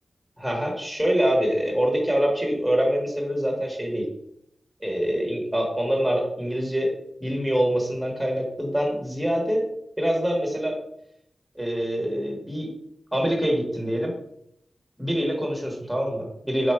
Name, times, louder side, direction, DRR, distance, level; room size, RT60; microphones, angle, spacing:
voice 1, 0.4-4.0 4.8-6.9 7.2-9.6 10.0-10.8 11.5-12.7 13.1-14.1 15.0-16.7, equal, 5° right, 0 dB, 1.4 m, -25 dB
3.8 x 3.0 x 4.4 m, 0.73 s
wide cardioid pair, 90°, 0 cm